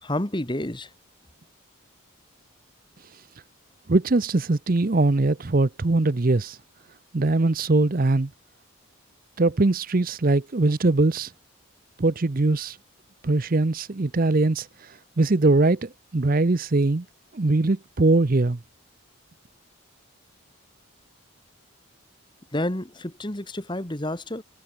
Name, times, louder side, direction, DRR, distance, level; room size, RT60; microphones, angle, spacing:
voice 1, 0.0-0.9 22.5-24.4, left 1 dB, 20° left, 1.5 m, -29 dB
voice 2, 3.9-6.6 7.1-8.3 9.4-11.3 12.0-12.8 13.2-17.0 17.3-18.6, right 2 dB, 40° right, 0.7 m, -21 dB
head